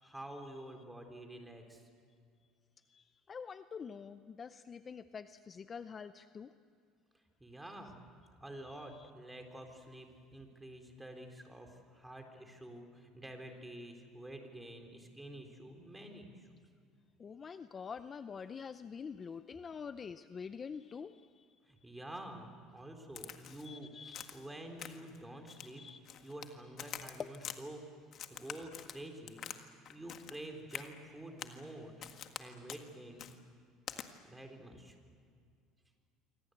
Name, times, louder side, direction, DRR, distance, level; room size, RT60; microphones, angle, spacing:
voice 1, 0.0-1.8 7.4-8.0 8.4-16.5 21.7-25.8 26.2-27.8 28.3-29.4 29.9-31.9 32.4-33.3 34.2-35.0, right 1 dB, 5° right, 4 dB, 3.9 m, -49 dB
voice 2, 2.9-6.5 8.7-9.1 17.2-21.5 23.6-24.4 25.5-26.0 27.0-27.3, left 6 dB, 25° left, 12 dB, 0.6 m, -46 dB
Crack, 23.2-23.7 24.1-24.5 24.8-25.2 25.5-26.5 26.8-27.6 28.1-29.6 29.9-30.4 30.7-30.9 31.4-31.6 32.0-32.4 32.7-32.8 33.2-33.3 33.9-34.1, left 10 dB, 45° left, 1.7 m, -46 dB
27.5 x 24.5 x 8.1 m, 2.2 s
cardioid pair, 130°, 0 cm